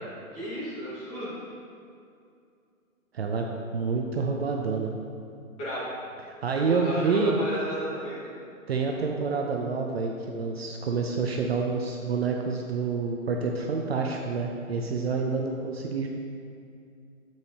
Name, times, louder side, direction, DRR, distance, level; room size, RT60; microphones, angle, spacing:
voice 1, 0.3-1.4 5.6-5.8 6.6-8.3, equal, 15° left, -9 dB, 1.8 m, -33 dB
voice 2, 3.1-3.5 3.7-4.9 6.4-7.4 8.7-16.1, right 4 dB, 50° right, 1 dB, 0.6 m, -28 dB
7.8 x 7.2 x 2.9 m, 2.4 s
hypercardioid pair, 150°, 41 cm